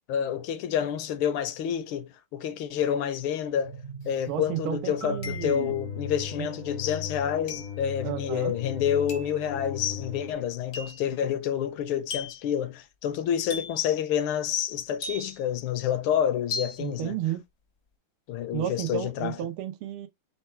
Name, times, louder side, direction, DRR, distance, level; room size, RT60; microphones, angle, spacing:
voice 1, 0.1-3.8 4.1-17.2 18.3-19.4, left 9 dB, 80° left, 1.5 m, -28 dB
sound 1, 3.6-10.3, left 6 dB, 35° right, 0.7 m, -39 dB
sound 2, 4.0-4.1 5.2-5.8 7.5-7.8 9.1-9.4 10.7-11.1 12.1-12.5 13.5-13.9 15.0-15.5 16.5-16.8, left 4 dB, 50° left, 0.8 m, -37 dB
voice 2, 4.3-5.7 6.4-6.5 8.0-8.5 16.8-17.4 18.5-20.1, right 11 dB, 80° right, 1.7 m, -32 dB
Marimba xylophone, 5.0-8.9, right 5 dB, 55° right, 1.1 m, -44 dB
4.5 x 2.2 x 4.3 m
omnidirectional pair, 2.4 m